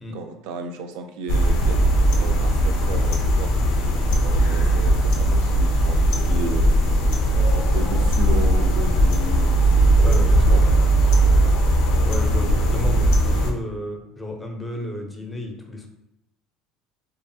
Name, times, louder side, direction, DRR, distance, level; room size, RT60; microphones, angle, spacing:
voice 1, 0.1-1.8 2.1-3.5 4.2-6.8 7.5-9.5 9.9-11.6, right 4 dB, 80° right, 6 dB, 0.3 m, -34 dB
sound 1, 1.3-13.5, right 1 dB, 75° left, 0.5 m, -18 dB
voice 2, 10.0-10.6 12.1-15.9, left 2 dB, 10° left, 2 dB, 0.5 m, -32 dB
2.7 x 2.4 x 2.6 m, 0.82 s
supercardioid pair, 120°, 0 cm